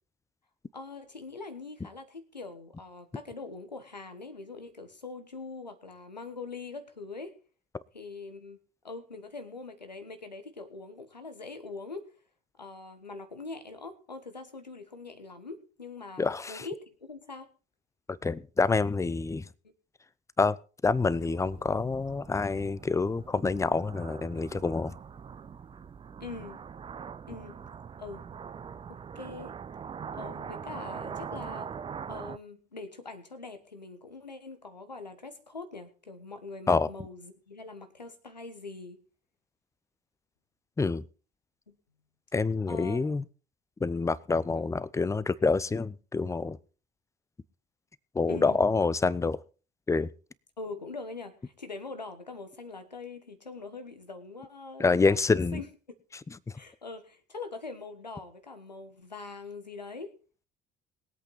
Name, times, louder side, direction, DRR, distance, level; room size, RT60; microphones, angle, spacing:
voice 1, 0.7-7.4 7.9-8.6 8.8-12.1 12.6-17.5 26.2-26.6 27.3-27.6 28.0-28.2 28.9-29.5 30.1-31.7 32.1-39.0 41.7-41.8 42.7-43.0 44.5-44.7 48.3-48.6 50.6-55.2 55.5-55.7 56.5-60.1, left 3 dB, 85° left, 1.4 m, -43 dB
voice 2, 16.2-16.7 18.1-19.5 20.4-20.6 20.8-25.0 36.7-36.9 40.8-41.0 42.3-43.2 43.8-46.6 48.1-49.4 49.9-50.1 54.8-55.6 56.3-56.4, left 4 dB, 15° left, 0.7 m, -27 dB
sound 1, 20.8-32.4, right 7 dB, 25° right, 0.7 m, -42 dB
21.5 x 8.3 x 4.1 m
figure-of-eight pair, 60°, 21 cm